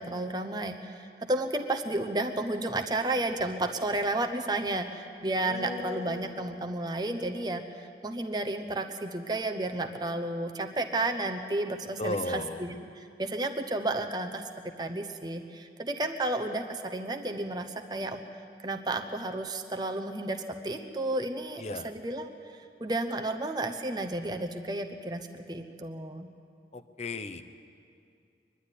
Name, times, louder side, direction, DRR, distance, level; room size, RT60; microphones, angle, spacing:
voice 1, 0.0-18.2 18.6-22.3 22.8-26.3, right 2 dB, 25° right, 5 dB, 0.9 m, -32 dB
voice 2, 5.4-6.9 12.0-12.6 21.6-21.9 26.7-27.4, left 2 dB, 35° left, 9 dB, 0.8 m, -36 dB
22.5 x 11.5 x 10.0 m, 2.4 s
head